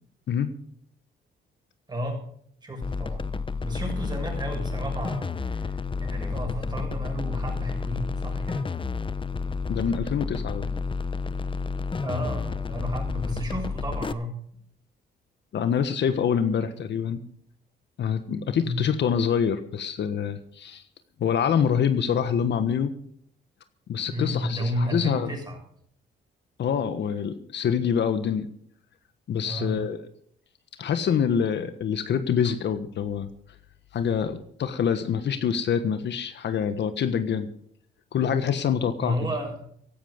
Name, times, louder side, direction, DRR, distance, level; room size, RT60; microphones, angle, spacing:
voice 1, 1.9-2.2 2.6-3.3 3.6-8.7 12.0-14.3 18.6-18.9 24.1-25.6 29.4-29.8 39.0-39.7, equal, 20° right, 2 dB, 7.0 m, -32 dB
sound 1, 2.8-14.1, left 4 dB, 25° left, 0.8 m, -30 dB
voice 2, 9.7-10.7 15.5-17.2 18.0-20.8 21.2-22.9 23.9-25.3 26.6-28.5 29.3-30.0 30.8-33.3 33.9-37.5 38.1-39.1, left 7 dB, 65° left, 10 dB, 1.4 m, -25 dB
16.0 x 12.0 x 5.2 m, 0.65 s
cardioid pair, 90°, 20 cm